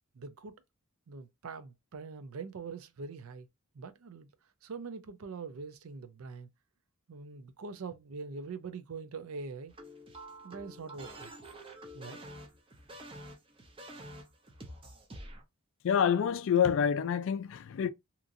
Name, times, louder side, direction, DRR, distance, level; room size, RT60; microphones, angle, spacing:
voice 1, 0.1-0.6 1.1-3.5 3.7-4.3 4.6-6.5 7.1-9.7 10.4-11.3 11.9-12.2, right 4 dB, 75° right, 0.5 m, -43 dB
sound 1, 9.7-15.4, right 1 dB, 25° right, 0.6 m, -48 dB
voice 2, 15.8-17.9, left 7 dB, 60° left, 0.3 m, -27 dB
2.9 x 2.5 x 2.5 m
head